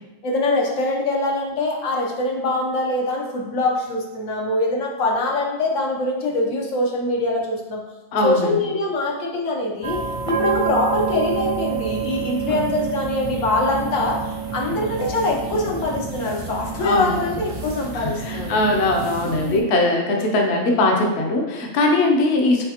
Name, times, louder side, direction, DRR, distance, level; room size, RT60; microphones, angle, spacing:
voice 1, 0.2-7.8 8.2-10.0 10.3-14.2 14.5-18.6 19.4-19.8, left 2 dB, 90° left, -1 dB, 1.2 m, -23 dB
voice 2, 8.1-8.7 12.5-12.7 16.8-17.4 17.9-22.6, left 2 dB, 65° left, 1 dB, 0.9 m, -20 dB
sound 1, 9.8-19.6, right 6 dB, 60° right, 0.3 m, -28 dB
5.7 x 3.2 x 2.8 m, 1.1 s
omnidirectional pair, 1.3 m